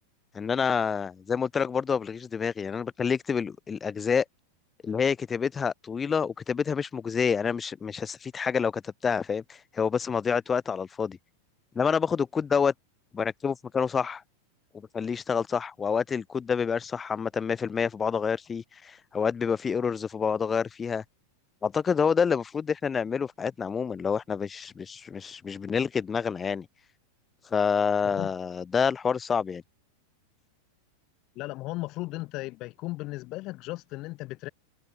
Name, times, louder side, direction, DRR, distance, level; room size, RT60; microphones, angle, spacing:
voice 1, 0.3-4.2 4.8-11.2 11.8-12.7 13.1-14.2 14.9-21.0 21.6-26.7 27.5-29.6, left 6 dB, 20° left, 0.6 m, -28 dB
voice 2, 31.3-34.5, left 20 dB, 40° left, 6.7 m, -36 dB
figure-of-eight pair, 90°, 0 cm